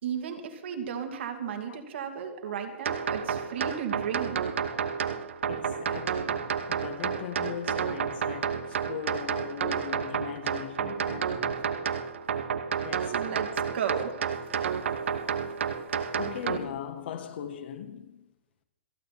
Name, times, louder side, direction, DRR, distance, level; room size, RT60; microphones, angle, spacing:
voice 1, 0.0-4.7 13.1-13.5 13.7-14.3 14.6-14.7, right 7 dB, 70° right, 2.6 m, -34 dB
voice 2, 1.4-1.8 3.0-3.1 5.5-11.9 12.8-13.5 14.5-14.6 15.5-15.6 16.2-18.3, left 9 dB, 60° left, 1.9 m, -40 dB
sound 1, 2.9-16.6, right 7 dB, 90° right, 1.1 m, -30 dB
27.5 x 9.3 x 4.3 m
hypercardioid pair, 160°, 6 cm